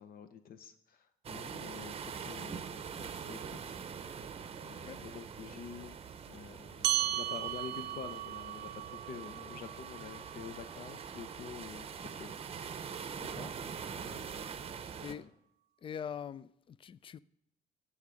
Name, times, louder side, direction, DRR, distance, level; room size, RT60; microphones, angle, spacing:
voice 1, 0.0-2.7 3.0-3.6 4.6-5.9 6.3-12.3 13.9-14.5 15.2-15.3, left 7 dB, 60° left, 0.8 m, -48 dB
sound 1, 1.2-15.1, right 6 dB, 35° right, 0.7 m, -44 dB
voice 2, 1.3-1.6 4.8-5.0 13.3-13.5 15.0-15.2 15.8-17.2, left 8 dB, 30° left, 0.3 m, -43 dB
sound 2, 6.8-11.6, right 13 dB, 75° right, 0.6 m, -37 dB
13.0 x 7.2 x 5.1 m
cardioid pair, 110°, 17 cm